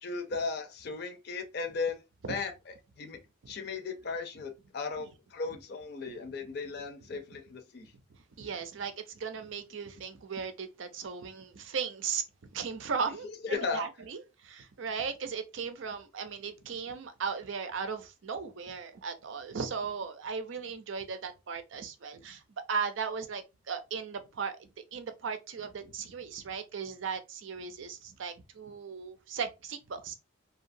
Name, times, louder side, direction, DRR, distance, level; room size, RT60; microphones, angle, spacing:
voice 1, 0.0-2.0 2.3-3.2 3.5-7.9 13.2-13.8, left 4 dB, 50° left, 0.5 m, -36 dB
voice 2, 8.4-22.4 22.7-30.1, right 6 dB, 70° right, 0.5 m, -37 dB
2.8 x 2.2 x 2.6 m
head